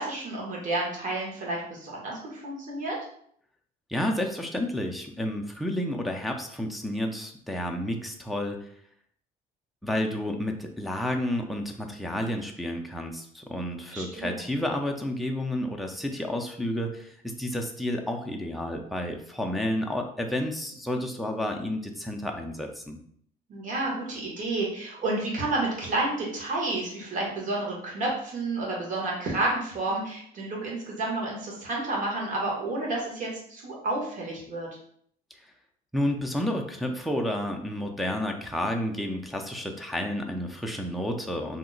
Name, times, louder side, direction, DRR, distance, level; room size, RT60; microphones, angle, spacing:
voice 1, 0.0-3.0 13.9-14.4 23.5-34.7, right 2 dB, 50° right, -3 dB, 1.3 m, -30 dB
voice 2, 3.9-8.7 9.8-23.0 35.9-41.6, left 1 dB, ahead, 1 dB, 0.4 m, -31 dB
2.8 x 2.1 x 3.8 m, 0.64 s
cardioid pair, 110°, 17 cm